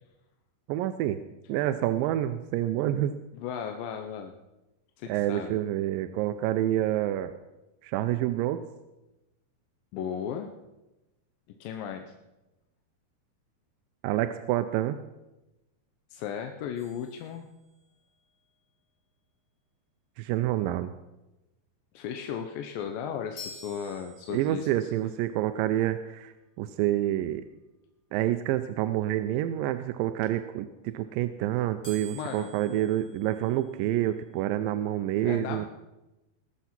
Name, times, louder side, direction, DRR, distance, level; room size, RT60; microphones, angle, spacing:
voice 1, 0.7-1.2 1.5-3.1 5.1-7.3 7.8-8.6 14.0-15.0 20.2-20.9 24.3-27.5 28.1-35.7, right 13 dB, 80° right, 9 dB, 2.1 m, -28 dB
voice 2, 3.3-4.3 5.0-5.5 9.9-10.5 11.6-12.1 16.1-17.5 21.9-24.9 32.1-32.5 35.2-35.7, left 8 dB, 75° left, 5 dB, 2.3 m, -35 dB
sound 1, 16.8-18.1 23.4-24.8 31.8-34.0, equal, 20° left, 4.2 m, -48 dB
20.5 x 7.3 x 5.9 m, 0.99 s
omnidirectional pair, 4.4 m